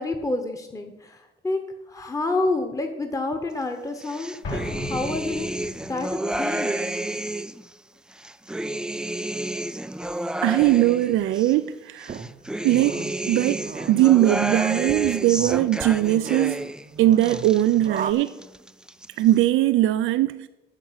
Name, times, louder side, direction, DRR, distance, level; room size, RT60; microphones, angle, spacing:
voice 1, 0.0-1.6 1.9-5.6 5.9-6.9, left 2 dB, 15° left, 1.1 m, -29 dB
sound 1, 4.0-7.6 8.1-11.5 12.0-16.8 17.1-18.0 18.3-19.1, right 1 dB, 5° right, 0.3 m, -30 dB
Explosion, 4.4-6.0, left 1 dB, 65° left, 3.2 m, -35 dB
voice 2, 10.4-12.2 12.6-13.6 13.9-16.7 17.0-18.3 19.2-20.5, right 14 dB, 80° right, 0.4 m, -20 dB
sound 2, 12.1-18.1, right 7 dB, 45° right, 0.7 m, -37 dB
9.0 x 6.6 x 8.0 m
cardioid pair, 90°, 20 cm